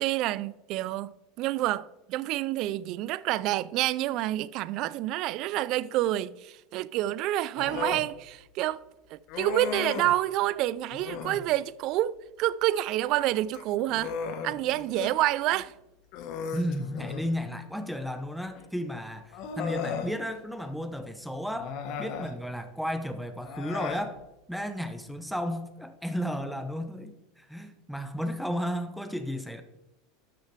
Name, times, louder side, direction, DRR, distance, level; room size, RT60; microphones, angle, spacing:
voice 1, 0.0-8.8 9.1-14.1 14.4-15.7, right 15 dB, 55° right, 0.3 m, -28 dB
Human voice, 7.6-8.1 9.3-10.2 10.9-11.5 13.4-15.2 15.5-15.6 16.1-17.3 18.5-18.6 19.3-20.1 21.5-22.4 23.4-24.1, left 6 dB, 55° left, 1.2 m, -36 dB
voice 2, 16.5-24.2 24.5-29.6, equal, ahead, 0.8 m, -33 dB
12.0 x 6.5 x 3.3 m
supercardioid pair, 110°, 0 cm